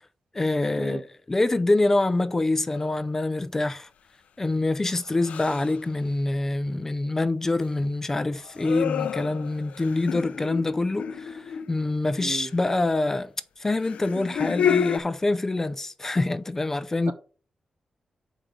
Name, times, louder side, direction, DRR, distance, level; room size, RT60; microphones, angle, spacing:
voice 1, 0.3-3.9 4.4-13.3 13.6-17.1, left 2 dB, 20° left, 0.5 m, -25 dB
sound 1, 2.8-3.1 5.2-5.8 8.4-12.0 13.8-15.0, left 8 dB, 80° left, 0.4 m, -29 dB
voice 2, 12.2-12.5 17.1-17.2, right 6 dB, 85° right, 1.2 m, -35 dB
6.7 x 5.0 x 6.0 m
wide cardioid pair, 150°, 2 cm